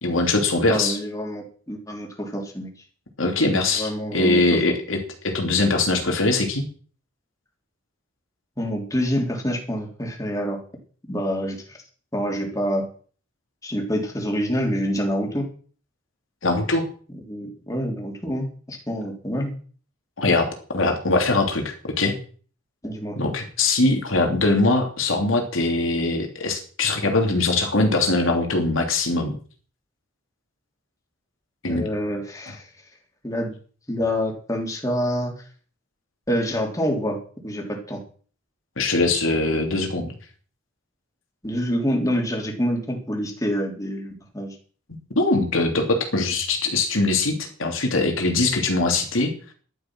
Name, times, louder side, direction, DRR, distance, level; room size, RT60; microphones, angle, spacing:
voice 1, 0.0-1.0 3.2-5.0 5.2-6.7 16.4-16.8 20.2-22.2 23.2-29.4 31.6-31.9 38.8-40.1 44.9-49.5, left 2 dB, 80° left, 3 dB, 3.1 m, -22 dB
voice 2, 0.7-2.7 3.7-4.6 8.6-10.6 11.1-11.8 12.1-12.9 13.6-15.5 17.3-19.5 22.8-23.2 31.7-32.7 33.2-33.5 33.9-35.3 36.3-38.0 41.4-44.6, equal, 15° left, 1 dB, 3.5 m, -27 dB
12.5 x 11.5 x 6.3 m, 0.43 s
head